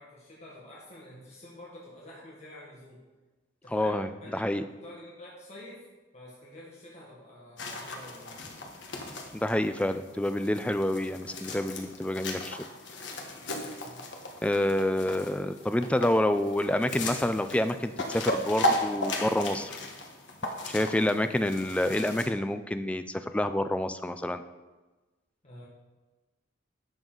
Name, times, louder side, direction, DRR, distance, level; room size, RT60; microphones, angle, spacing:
voice 1, 0.0-3.0 3.6-5.8 6.1-8.4 13.4-14.1 25.4-25.7, left 1 dB, 35° left, -5 dB, 1.6 m, -48 dB
voice 2, 3.7-4.6 9.3-12.6 14.4-19.8 20.7-24.4, left 1 dB, 5° left, 10 dB, 0.4 m, -28 dB
sound 1, 7.6-22.3, left 1 dB, 65° left, 1.4 m, -36 dB
11.0 x 7.2 x 3.9 m, 1.2 s
head